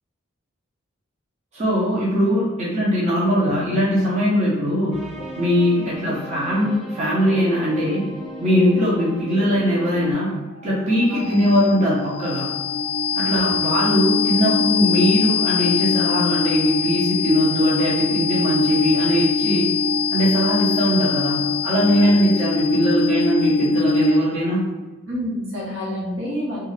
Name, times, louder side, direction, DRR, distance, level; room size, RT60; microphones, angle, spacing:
voice 1, 1.5-5.0 5.4-8.1 8.4-10.4 10.6-12.5 13.1-19.7 20.1-24.6, equal, 35° right, -7 dB, 0.7 m, -20 dB
sound 1, 4.9-10.1, right 1 dB, ahead, 0.5 m, -36 dB
sound 2, 10.6-24.5, left 5 dB, 75° left, 0.3 m, -23 dB
voice 2, 11.1-11.4 13.3-13.6 22.0-22.1 25.1-26.6, equal, 75° right, -6 dB, 1.1 m, -29 dB
2.6 x 2.3 x 3.2 m, 1.2 s
head